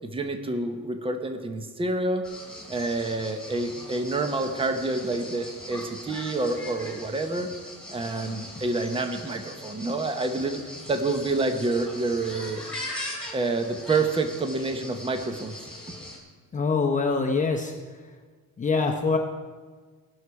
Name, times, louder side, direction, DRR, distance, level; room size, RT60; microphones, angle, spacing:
voice 1, 0.0-2.2 2.7-7.5 7.9-10.6 10.9-12.6 13.3-15.6 15.9-16.0, right 3 dB, 15° right, 6 dB, 0.9 m, -28 dB
sound 1, 2.2-16.2, left 1 dB, 5° left, 2.8 m, -40 dB
voice 2, 16.5-18.1 18.6-19.2, left 4 dB, 25° left, 1 dB, 0.8 m, -25 dB
18.0 x 6.4 x 4.7 m, 1.5 s
cardioid pair, 135°, 33 cm